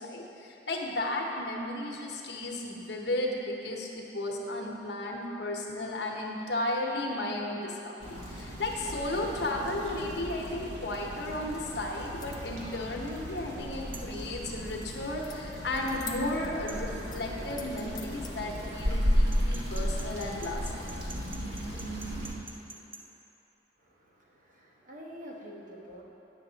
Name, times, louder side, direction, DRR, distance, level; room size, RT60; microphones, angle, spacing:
voice 1, 0.0-21.0, left 1 dB, 70° left, 0 dB, 0.9 m, -34 dB
sound 1, 8.0-22.3, equal, 70° right, 1.3 m, -34 dB
sound 2, 12.2-12.6 15.2-15.4 15.7-16.6 17.0-18.3, left 6 dB, 25° left, 0.5 m, -45 dB
sound 3, 13.9-14.2 16.7-16.8 19.3-23.0, right 3 dB, 30° right, 0.6 m, -46 dB
voice 2, 23.8-26.0, equal, 50° right, -2 dB, 1.0 m, -47 dB
9.1 x 6.3 x 3.9 m, 3.0 s
head